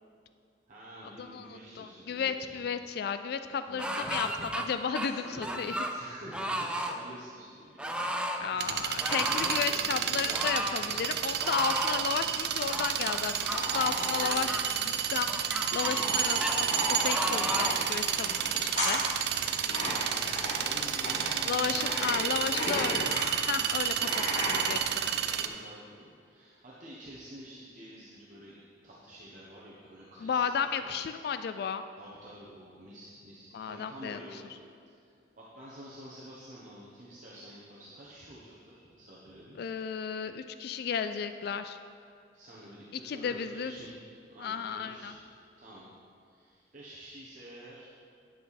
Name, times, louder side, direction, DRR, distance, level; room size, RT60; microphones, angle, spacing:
voice 1, 0.7-2.7 3.7-8.1 8.4-11.1 19.7-22.2 22.4-23.1 25.0-28.6 28.8-31.0 32.0-34.4 34.8-39.6 42.3-43.9 44.2-45.2 45.6-45.9 46.2-47.9, equal, 45° right, -7 dB, 1.2 m, -49 dB
voice 2, 1.2-4.3 4.7-5.8 8.0-15.3 15.7-18.3 18.6-19.0 21.4-23.1 23.5-25.0 30.2-31.8 33.5-34.2 39.6-41.8 43.0-43.8 44.4-45.2, left 7 dB, 60° left, 10 dB, 0.3 m, -33 dB
sound 1, 3.8-4.7 5.0-6.0 6.3-7.0 7.8-8.4 9.0-9.7 10.3-10.8 11.4-12.0 12.7-13.6 14.2-14.6 15.3-16.1 16.4-16.6 17.0-17.8 18.4-18.5, right 1 dB, 5° right, 0.5 m, -34 dB
sound 2, 8.6-25.5, right 9 dB, 65° right, 0.5 m, -31 dB
sound 3, 13.5-24.8, equal, 40° left, 2.0 m, -35 dB
10.0 x 7.6 x 4.2 m, 2.3 s
head